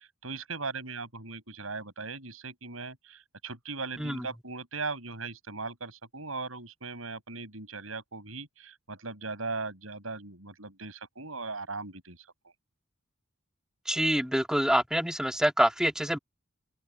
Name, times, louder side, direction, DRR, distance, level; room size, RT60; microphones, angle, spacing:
voice 1, 0.0-12.3, right 3 dB, 85° right, 6.3 m, -39 dB
voice 2, 13.9-16.2, equal, 5° right, 2.1 m, -26 dB
open air
head